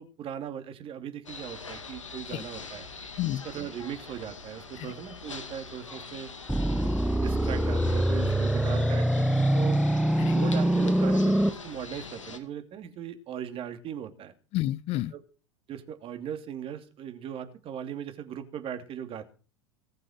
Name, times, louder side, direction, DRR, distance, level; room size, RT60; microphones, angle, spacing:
voice 1, 0.0-2.9 3.3-6.3 6.8-9.8 10.3-14.3 15.1-15.2 15.7-19.2, right 9 dB, 35° right, 2.7 m, -38 dB
sound 1, 1.2-12.4, left 4 dB, 80° left, 2.1 m, -43 dB
sound 2, 6.5-11.5, right 1 dB, 5° right, 1.0 m, -24 dB
voice 2, 14.5-15.1, left 15 dB, 40° left, 0.7 m, -30 dB
19.0 x 7.6 x 6.6 m
figure-of-eight pair, 80°, 16 cm